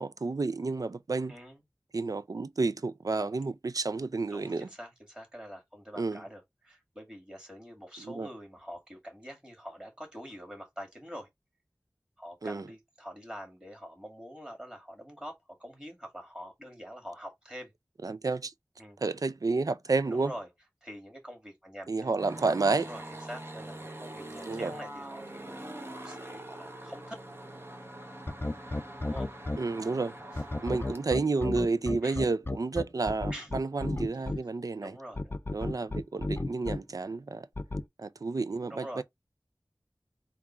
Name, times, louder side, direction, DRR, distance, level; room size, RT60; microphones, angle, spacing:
voice 1, 0.0-1.3 1.9-4.7 6.0-6.2 8.2-8.3 12.4-12.6 18.0-18.5 19.0-20.3 21.9-22.9 24.5-24.7 29.6-30.1 30.6-34.9 35.5-37.4 38.0-39.0, right 3 dB, 60° right, 0.4 m, -30 dB
voice 2, 1.3-1.6 4.3-11.3 12.2-17.7 18.8-19.0 20.1-20.5 20.8-22.4 22.8-27.2 29.0-29.3 30.3-30.4 32.0-32.2 33.3-33.5 34.8-35.4 38.7-39.0, equal, 15° right, 2.0 m, -45 dB
sound 1, 22.2-31.0, right 1 dB, 35° right, 0.9 m, -44 dB
sound 2, 28.3-29.6 30.4-34.4 35.2-36.8 37.6-37.8, left 2 dB, 30° left, 0.5 m, -32 dB
3.7 x 2.4 x 4.3 m
wide cardioid pair, 50°, 7 cm